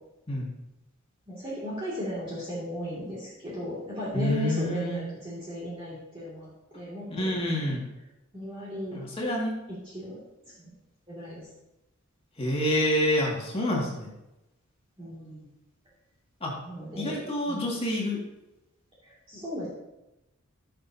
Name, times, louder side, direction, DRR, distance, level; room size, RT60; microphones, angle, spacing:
voice 1, 1.3-6.5 6.7-7.8 8.3-9.0 9.8-10.2 10.6-10.7 11.1-11.4 15.0-15.5 16.6-17.7 19.0-19.7, equal, 25° right, -8 dB, 2.3 m, -36 dB
voice 2, 4.1-5.0 7.1-7.8 8.9-9.5 12.4-14.1 16.4-16.5 17.0-18.2, left 1 dB, 25° left, -3 dB, 2.1 m, -28 dB
15.5 x 6.8 x 2.8 m, 0.95 s
head